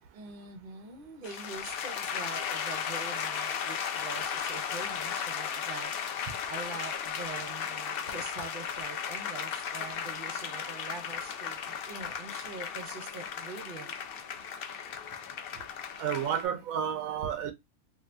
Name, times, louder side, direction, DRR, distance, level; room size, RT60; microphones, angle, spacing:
voice 1, 0.1-5.9 6.5-13.9, right 4 dB, 45° right, 0.9 m, -44 dB
sound 1, 1.2-16.5, left 7 dB, 65° left, 0.6 m, -36 dB
voice 2, 16.0-17.5, right 9 dB, 90° right, 1.0 m, -31 dB
2.8 x 2.5 x 3.3 m
omnidirectional pair, 1.4 m